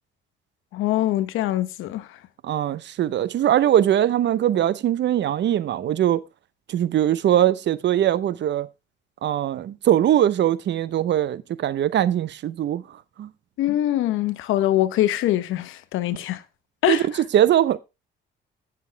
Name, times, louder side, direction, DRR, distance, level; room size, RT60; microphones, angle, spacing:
voice 1, 0.7-2.1 13.6-16.4 16.8-17.0, left 14 dB, 90° left, 1.0 m, -23 dB
voice 2, 2.4-6.2 6.7-8.7 9.2-12.8 13.2-13.3 16.9-17.0 17.3-17.8, right 11 dB, 65° right, 0.7 m, -21 dB
15.5 x 7.2 x 3.3 m
cardioid pair, 90°, 20 cm